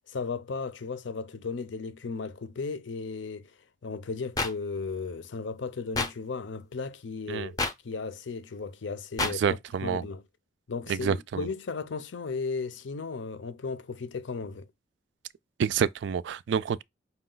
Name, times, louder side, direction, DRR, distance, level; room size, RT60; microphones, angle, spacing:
voice 1, 0.1-3.5 3.8-7.6 7.8-10.2 10.7-14.7, left 4 dB, 75° left, 0.5 m, -35 dB
sound 1, 4.4-4.5 5.9-6.1 7.6-7.7 9.2-9.3, left 3 dB, 20° left, 0.5 m, -27 dB
voice 2, 9.2-10.0 10.9-11.5 15.6-16.8, right 7 dB, 70° right, 0.3 m, -28 dB
5.4 x 2.2 x 3.8 m
head